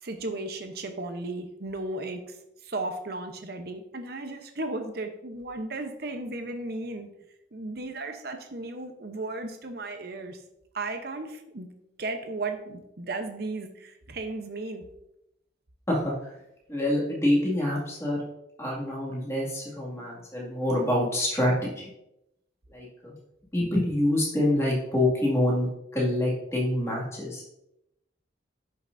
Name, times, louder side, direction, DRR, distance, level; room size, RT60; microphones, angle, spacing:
voice 1, 0.0-2.4 2.6-7.1 7.5-10.4 10.7-11.7 12.0-14.8, right 2 dB, 55° right, 6 dB, 0.8 m, -35 dB
voice 2, 15.9-16.3 16.7-18.2 18.6-21.9 22.7-23.2 23.5-27.4, left 1 dB, 15° left, -4 dB, 2.2 m, -26 dB
11.0 x 5.8 x 2.6 m, 0.85 s
head